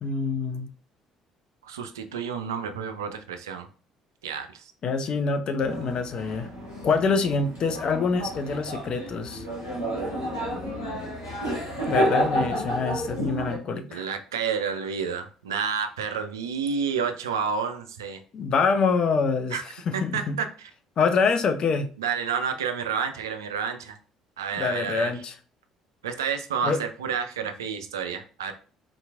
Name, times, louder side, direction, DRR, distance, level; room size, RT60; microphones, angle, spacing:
voice 1, 0.0-0.7 4.8-6.5 6.8-9.4 11.9-14.1 18.3-19.6 19.9-20.4 21.0-21.9 24.5-25.3 26.6-26.8, left 5 dB, 45° left, 8 dB, 0.5 m, -25 dB
voice 2, 1.6-3.7 4.2-4.7 13.9-18.2 19.5-19.6 19.9-20.7 22.0-24.0 24.4-25.1 26.0-28.5, right 6 dB, 75° right, 7 dB, 0.4 m, -30 dB
sound 1, 5.6-13.6, equal, 85° left, 1.0 m, -30 dB
3.8 x 2.9 x 2.4 m, 0.39 s
figure-of-eight pair, 50°, 2 cm